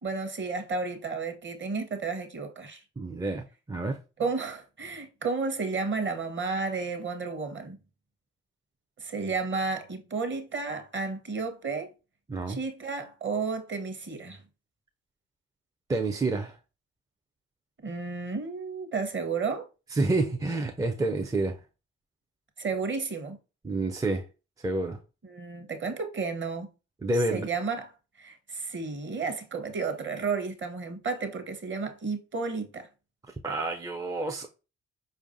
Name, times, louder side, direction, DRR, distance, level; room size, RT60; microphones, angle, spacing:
voice 1, 0.0-2.8 4.2-7.8 9.0-11.9 12.5-14.4 17.8-19.7 22.6-23.4 25.2-26.7 27.1-27.9 28.2-32.9, right 4 dB, 35° right, 0.9 m, -32 dB
voice 2, 3.0-4.0 12.3-12.6 15.9-16.6 19.9-21.6 23.6-24.3 24.6-25.0 27.0-27.5 33.4-34.5, right 2 dB, 10° right, 0.4 m, -28 dB
4.7 x 2.5 x 2.5 m
hypercardioid pair, 45°, 35 cm